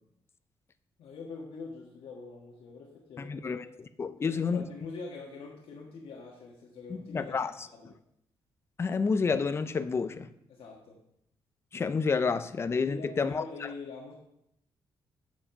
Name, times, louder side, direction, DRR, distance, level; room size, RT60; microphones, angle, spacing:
voice 1, 1.0-3.7 4.2-7.9 10.5-11.0 12.9-14.1, left 4 dB, 70° left, -2 dB, 1.4 m, -44 dB
voice 2, 3.2-3.6 4.0-4.6 7.1-7.5 8.8-10.3 11.7-13.4, left 5 dB, 25° left, 11 dB, 0.5 m, -29 dB
7.4 x 7.4 x 5.7 m, 0.77 s
wide cardioid pair, 155°, 10 cm